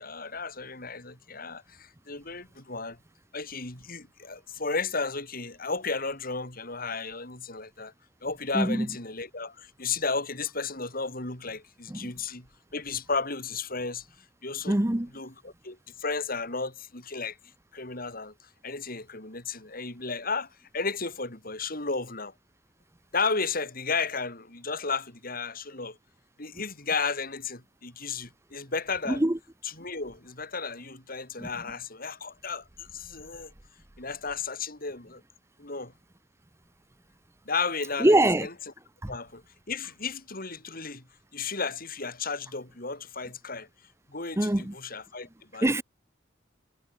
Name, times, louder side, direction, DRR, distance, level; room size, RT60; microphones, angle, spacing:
voice 1, 0.0-3.0 3.3-7.9 8.2-12.5 12.7-14.1 14.4-14.8 15.1-17.4 17.7-18.3 18.6-22.3 23.1-26.0 26.4-29.2 29.8-33.5 34.0-35.2 35.6-35.9 37.4-38.5 39.1-41.0 41.3-43.7 44.1-45.7, left 4 dB, 50° left, 6.5 m, -33 dB
voice 2, 8.5-8.9 11.9-12.1 14.7-15.1 29.1-29.4 31.4-31.5 38.0-38.5 39.0-39.1 44.4-44.7 45.6-45.8, right 1 dB, 15° right, 0.8 m, -23 dB
head